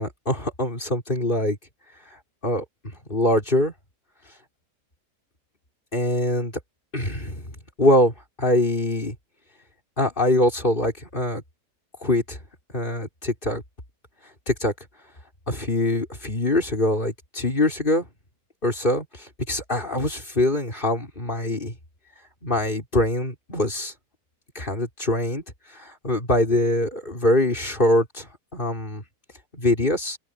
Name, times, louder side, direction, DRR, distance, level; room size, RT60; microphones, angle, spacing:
voice 1, 0.0-1.6 2.4-3.7 5.9-6.6 6.9-9.2 10.0-11.4 12.0-12.4 12.7-13.6 14.5-14.7 15.5-18.1 18.6-21.7 22.4-23.9 24.6-25.4 25.7-29.0 29.5-30.2, left 1 dB, 30° left, 5.3 m, -23 dB
open air
omnidirectional pair, 1.8 m